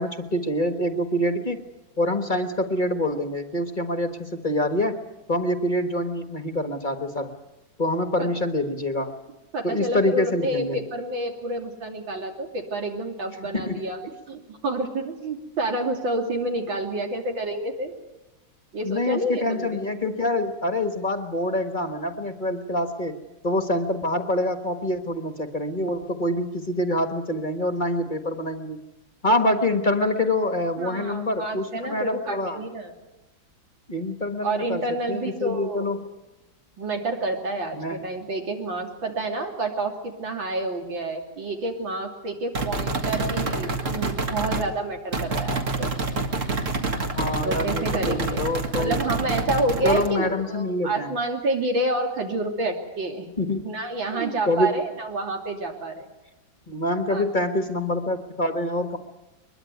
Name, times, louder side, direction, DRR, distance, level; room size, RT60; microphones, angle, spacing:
voice 1, 0.0-1.6 2.0-5.0 5.3-7.3 7.8-9.2 9.6-10.8 13.5-13.8 18.8-23.1 23.4-28.8 29.2-32.6 33.9-36.1 37.7-38.0 47.0-49.0 49.8-51.1 53.4-53.7 54.1-54.7 56.7-59.0, left 1 dB, 30° left, 7 dB, 1.3 m, -26 dB
voice 2, 9.5-14.0 14.3-17.9 18.7-19.7 30.8-32.9 34.4-35.9 36.8-45.9 47.4-48.4 48.8-53.3 53.6-56.1 57.1-57.3, right 2 dB, 75° right, 3 dB, 3.7 m, -29 dB
sound 1, 42.5-44.7 45.1-50.1, right 3 dB, 40° right, 2.1 m, -27 dB
22.5 x 22.0 x 9.4 m, 1.0 s
omnidirectional pair, 2.1 m